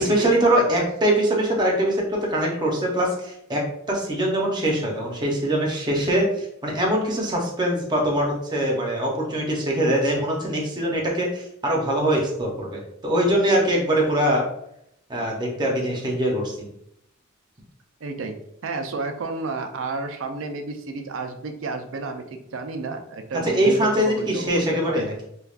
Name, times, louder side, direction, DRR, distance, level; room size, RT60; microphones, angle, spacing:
voice 1, 0.0-3.6 3.9-14.4 15.1-16.7 23.4-25.2, right 1 dB, 20° right, -2 dB, 0.7 m, -23 dB
voice 2, 0.5-0.9 18.0-18.3 18.6-25.1, right 3 dB, 65° right, 6 dB, 0.4 m, -31 dB
3.4 x 2.3 x 2.4 m, 0.75 s
head